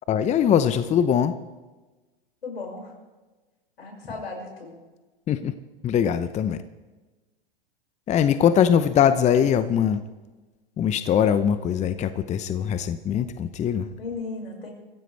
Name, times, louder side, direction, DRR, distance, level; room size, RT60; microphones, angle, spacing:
voice 1, 0.1-1.3 5.3-5.5 5.8-6.6 8.1-10.0 10.8-13.9, left 8 dB, 25° left, 12 dB, 0.8 m, -21 dB
voice 2, 2.4-2.9 3.8-4.8 14.0-14.7, left 3 dB, 90° left, 0 dB, 5.9 m, -35 dB
24.0 x 15.0 x 3.4 m, 1.2 s
hypercardioid pair, 105°, 29 cm